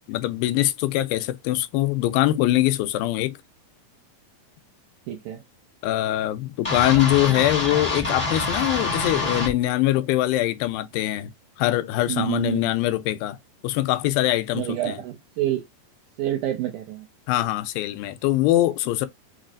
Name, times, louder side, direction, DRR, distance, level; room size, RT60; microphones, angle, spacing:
voice 1, 0.1-3.3 5.8-11.3 11.6-13.4 13.6-15.0 17.3-19.1, left 15 dB, 85° left, 2.3 m, -23 dB
voice 2, 5.1-5.4 12.1-12.6 14.5-15.6 16.2-17.1, right 13 dB, 80° right, 1.8 m, -27 dB
sound 1, 6.6-9.5, left 2 dB, 25° left, 0.7 m, -26 dB
6.0 x 2.0 x 2.4 m
omnidirectional pair, 4.1 m